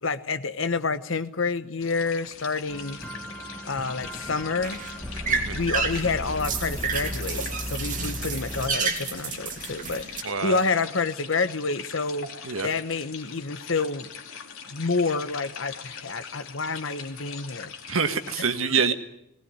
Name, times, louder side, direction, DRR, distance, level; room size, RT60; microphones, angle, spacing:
voice 1, 0.0-3.0 3.6-4.8 5.5-12.3 12.6-14.1 14.7-17.7 18.3-18.5, left 4 dB, 65° left, 13 dB, 1.1 m, -28 dB
sound 1, 1.8-18.3, left 6 dB, 90° left, 2.6 m, -42 dB
sound 2, 2.7-8.7, equal, 5° left, 2.0 m, -36 dB
sound 3, 4.0-10.2, right 5 dB, 40° right, 2.7 m, -31 dB
voice 2, 5.3-5.6 10.2-10.6 12.4-12.7 17.9-18.9, right 5 dB, 75° right, 9 dB, 1.7 m, -26 dB
21.0 x 18.0 x 9.6 m, 0.82 s
head